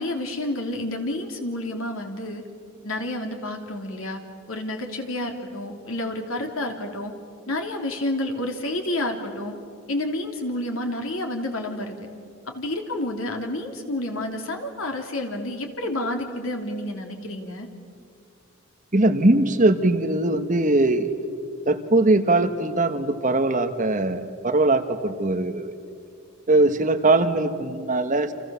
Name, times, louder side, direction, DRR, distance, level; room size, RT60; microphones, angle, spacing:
voice 1, 0.0-2.4 2.8-4.2 4.5-7.1 7.5-9.5 9.9-11.9 12.5-17.7, left 1 dB, 85° left, 3 dB, 3.3 m, -29 dB
voice 2, 18.9-21.1 21.7-25.7 26.5-28.3, right 2 dB, 40° right, 8 dB, 1.4 m, -21 dB
29.5 x 27.0 x 7.1 m, 2.3 s
head